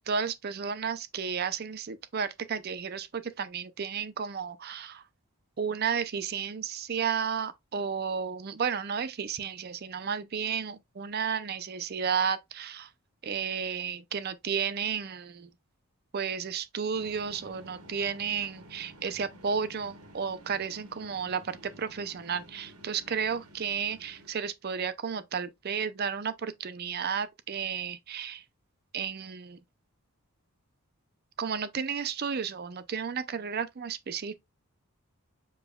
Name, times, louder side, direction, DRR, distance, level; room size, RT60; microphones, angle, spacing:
voice 1, 0.0-5.0 5.6-12.9 13.2-15.5 16.1-28.4 28.9-29.6 31.4-34.3, right 6 dB, 45° right, 0.5 m, -32 dB
sound 1, 16.9-24.3, equal, 80° right, 1.0 m, -52 dB
6.9 x 3.0 x 2.2 m
head